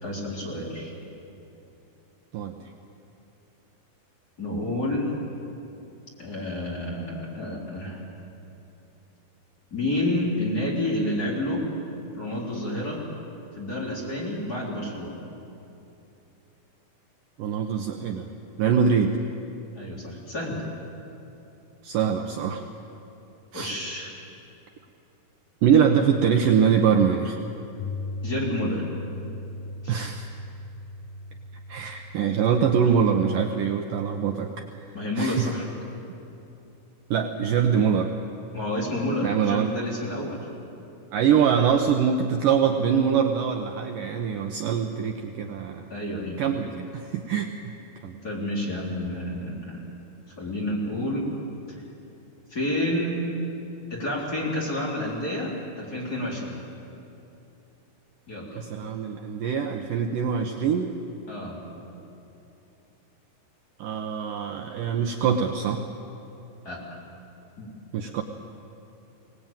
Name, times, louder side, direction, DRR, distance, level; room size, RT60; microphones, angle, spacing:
voice 1, 0.0-0.9 4.4-5.1 6.2-8.0 9.7-11.6 12.1-13.1 13.6-15.2 19.8-20.7 23.5-24.2 28.2-28.9 29.8-30.0 34.9-35.7 38.5-40.4 45.9-46.4 48.2-49.8 50.4-51.2 52.5-53.3 53.9-56.6 58.3-58.6 61.3-61.6 66.6-67.0 67.6-67.7, left 1 dB, 25° left, -4 dB, 3.9 m, -29 dB
voice 2, 17.4-18.3 18.6-19.2 21.8-22.6 23.5-23.7 25.6-27.4 29.9-30.3 31.7-34.7 35.2-35.5 37.1-38.1 39.2-39.7 41.1-45.8 46.4-47.7 48.0-48.2 58.6-60.9 63.8-65.8 67.9-68.2, right 7 dB, 70° right, 4 dB, 2.2 m, -23 dB
Piano, 27.8-35.9, left 2 dB, 70° left, 2.1 m, -39 dB
23.0 x 19.0 x 9.0 m, 2.9 s
omnidirectional pair, 4.6 m